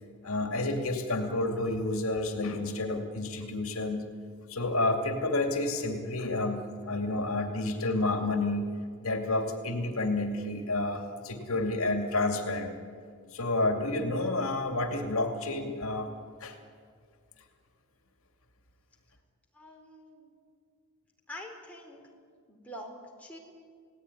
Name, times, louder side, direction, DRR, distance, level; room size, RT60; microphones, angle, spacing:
voice 1, 0.2-4.1 4.5-8.8 9.0-12.7 13.3-16.1 16.4-16.6, left 2 dB, 70° left, 5 dB, 2.5 m, -30 dB
voice 2, 19.5-20.3 21.3-22.0 22.5-22.9 23.2-23.4, left 1 dB, 5° left, -1 dB, 4.1 m, -45 dB
30.0 x 17.5 x 10.0 m, 2.1 s
head